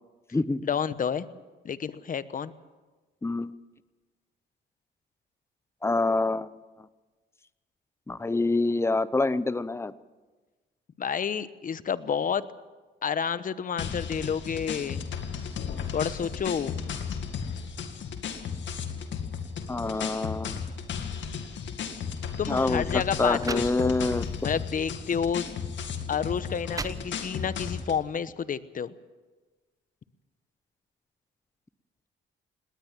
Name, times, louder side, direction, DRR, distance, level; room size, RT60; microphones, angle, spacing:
voice 1, 0.6-1.3 1.6-2.5 11.0-12.4 13.0-15.0 15.9-16.7 22.4-23.9 24.4-25.5 26.1-28.9, left 7 dB, 45° left, 15 dB, 1.0 m, -30 dB
voice 2, 3.2-3.5 5.8-6.5 8.1-9.9 19.7-20.6 22.5-22.8 23.2-24.2, left 2 dB, 15° left, 17 dB, 0.7 m, -26 dB
sound 1, 13.8-28.0, left 6 dB, 70° left, 2.2 m, -35 dB
sound 2, 22.1-22.3 23.0-23.1 23.4-24.3 24.9-25.0 25.8-25.9 26.4-27.5, right 3 dB, 15° right, 1.0 m, -38 dB
20.0 x 19.0 x 7.4 m, 1.3 s
cardioid pair, 90°, 20 cm